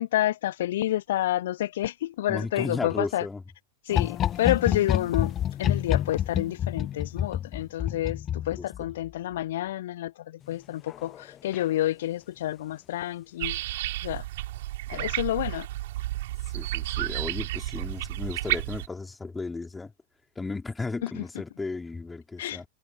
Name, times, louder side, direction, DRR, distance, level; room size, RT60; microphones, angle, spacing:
voice 1, 0.0-3.3 3.9-13.6 14.0-14.2 14.9-15.7 21.0-21.2 22.4-22.6, left 13 dB, 55° left, 1.0 m, -29 dB
voice 2, 2.3-3.4 8.6-8.9 14.9-15.1 16.5-19.9 20.4-22.7, left 3 dB, 10° left, 4.1 m, -35 dB
sound 1, 3.9-9.1 10.9-11.2 11.5-11.6, left 10 dB, 30° left, 1.1 m, -28 dB
sound 2, 13.4-18.9, right 16 dB, 55° right, 5.3 m, -31 dB
figure-of-eight pair, 90°, 0 cm